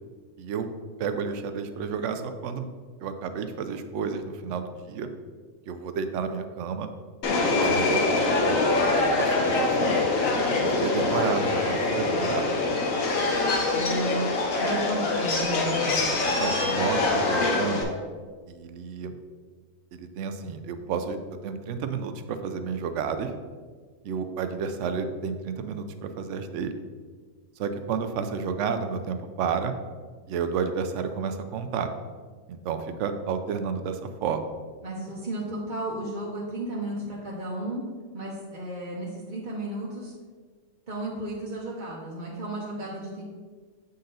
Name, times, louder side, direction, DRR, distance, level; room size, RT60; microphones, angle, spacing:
voice 1, 0.4-0.7 1.0-2.7 3.0-5.1 5.7-6.9 7.6-8.1 8.4-10.1 10.6-12.5 16.4-17.9 18.5-19.2 19.9-21.2 21.4-23.3 24.0-26.7 27.6-29.7 30.3-31.9 32.5-34.5, right 6 dB, 70° right, 8 dB, 0.9 m, -31 dB
Subway metro underground, 7.2-17.8, left 3 dB, 85° left, 1.4 m, -24 dB
voice 2, 13.7-16.1 34.8-37.8 38.1-40.1 40.9-43.2, right 1 dB, 40° right, -5 dB, 0.9 m, -33 dB
7.8 x 4.0 x 3.9 m, 1.5 s
omnidirectional pair, 1.4 m